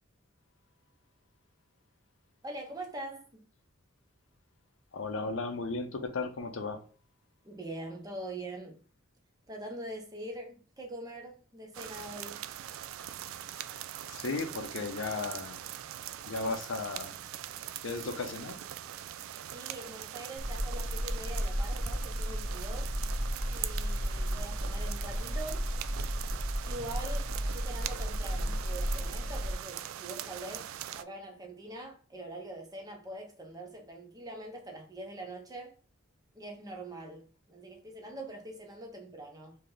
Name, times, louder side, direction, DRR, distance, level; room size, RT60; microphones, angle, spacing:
voice 1, 2.4-3.4 7.4-8.8 9.5-12.4 19.5-23.0 23.5-25.7 26.6-35.8 36.3-39.6, right 1 dB, 20° right, 0.8 m, -43 dB
voice 2, 4.9-6.8 14.1-15.7 16.3-17.2 17.8-18.6, left 3 dB, 70° left, 0.6 m, -35 dB
sound 1, 11.7-31.0, right 11 dB, 90° right, 0.3 m, -42 dB
sound 2, 20.4-29.5, equal, 30° left, 1.3 m, -33 dB
3.3 x 2.7 x 3.8 m
head